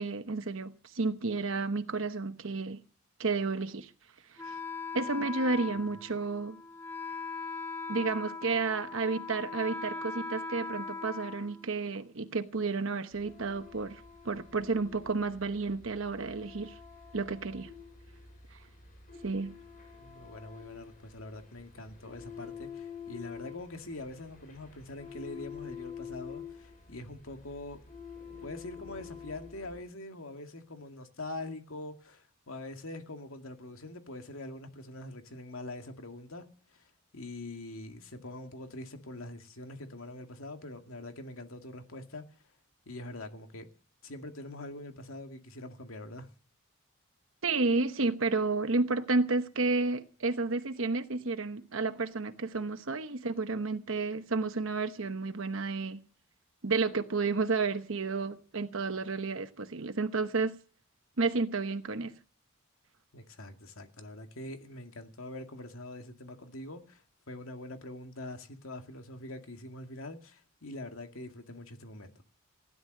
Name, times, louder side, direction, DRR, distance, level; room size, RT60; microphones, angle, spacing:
voice 1, 0.0-2.8 3.2-3.9 4.4-4.5 4.9-6.6 7.9-16.7 17.1-17.7 19.2-19.5 47.4-56.0 56.6-60.6 61.2-62.2, right 3 dB, 70° right, 1.0 m, -31 dB
Wind instrument woodwind instrument, 4.4-12.1, left 4 dB, 10° left, 1.8 m, -40 dB
sound 1, 13.1-29.8, left 6 dB, 40° left, 6.3 m, -47 dB
voice 2, 20.0-27.8 28.4-36.5 36.8-36.9 37.1-42.2 42.9-43.7 44.0-46.3 63.1-67.0 67.3-72.1, left 2 dB, 80° left, 2.2 m, -44 dB
16.5 x 11.0 x 6.6 m
head